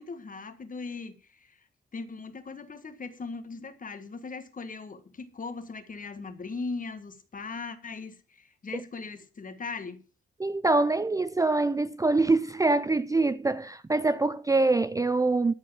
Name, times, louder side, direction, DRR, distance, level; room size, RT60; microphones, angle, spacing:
voice 1, 0.0-1.6 1.9-10.0, left 4 dB, 40° left, 1.6 m, -39 dB
voice 2, 10.4-15.5, right 3 dB, 15° right, 0.5 m, -24 dB
13.5 x 4.7 x 7.4 m
cardioid pair, 95°, 21 cm